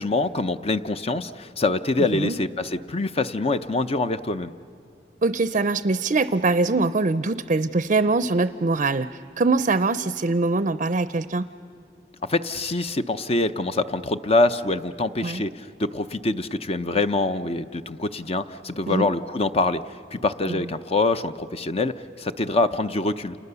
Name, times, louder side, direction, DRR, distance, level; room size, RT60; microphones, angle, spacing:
voice 1, 0.0-4.5 12.3-19.8 20.1-23.4, left 2 dB, 35° left, 10 dB, 0.6 m, -25 dB
voice 2, 5.2-11.5 15.2-15.4 18.9-19.1 20.5-20.6, right 3 dB, 45° right, 13 dB, 0.6 m, -23 dB
29.5 x 29.0 x 6.9 m, 2.4 s
head